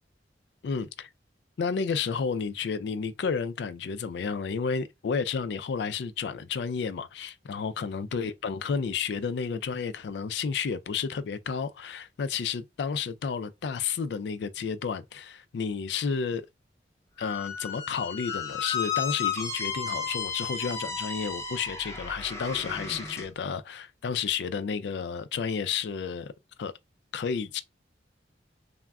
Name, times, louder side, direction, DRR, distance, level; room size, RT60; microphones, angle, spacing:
voice 1, 0.6-1.1 1.6-16.4 17.2-26.3 26.6-26.7 27.1-27.6, left 6 dB, 75° left, 0.3 m, -31 dB
Squeak, 17.2-23.3, left 6 dB, 15° left, 0.5 m, -33 dB
3.5 x 2.1 x 2.3 m
head